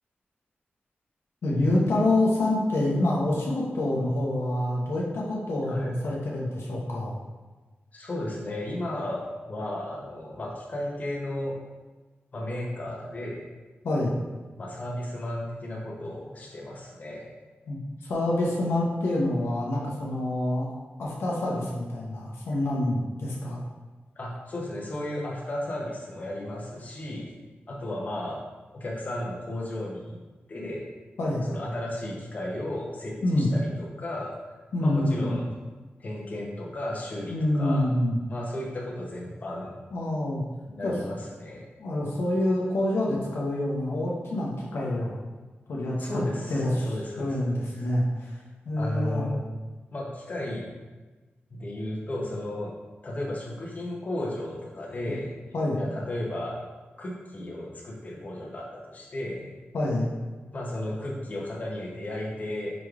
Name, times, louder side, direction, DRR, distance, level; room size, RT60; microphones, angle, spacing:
voice 1, 1.4-7.2 13.8-14.1 17.7-20.7 21.0-23.6 31.2-31.5 33.2-33.5 34.7-35.4 37.3-38.2 39.9-40.4 40.8-40.9 41.8-45.2 45.7-46.2 46.5-48.4 48.6-49.2 55.1-55.2 55.5-55.8 59.7-60.1, left 1 dB, 85° left, -3 dB, 0.7 m, -27 dB
voice 2, 7.9-9.2 9.5-11.6 12.3-13.4 14.6-17.3 24.2-27.3 27.7-28.4 28.7-30.2 30.5-30.9 31.5-34.3 34.8-35.5 36.0-37.9 38.3-39.8 40.7-41.7 46.0-47.9 48.8-49.4 49.9-50.7 51.5-52.7 53.0-55.3 55.8-56.6 57.0-59.5 60.5-62.7, left 1 dB, 40° left, -3 dB, 0.7 m, -34 dB
4.9 x 3.2 x 2.3 m, 1.3 s
wide cardioid pair, 115°, 4 cm